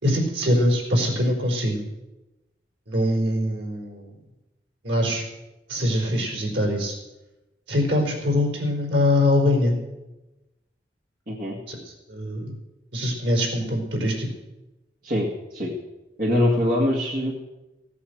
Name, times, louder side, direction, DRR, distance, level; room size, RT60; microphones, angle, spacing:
voice 1, 0.0-1.8 2.9-4.1 4.8-5.2 5.7-6.9 7.7-9.8 11.7-11.8 12.1-12.5 12.9-14.3, left 1 dB, 85° right, 0 dB, 4.5 m, -23 dB
voice 2, 11.3-11.6 15.0-15.7 16.2-17.3, left 1 dB, 55° right, -2 dB, 2.1 m, -23 dB
16.5 x 8.6 x 7.9 m, 1.0 s
head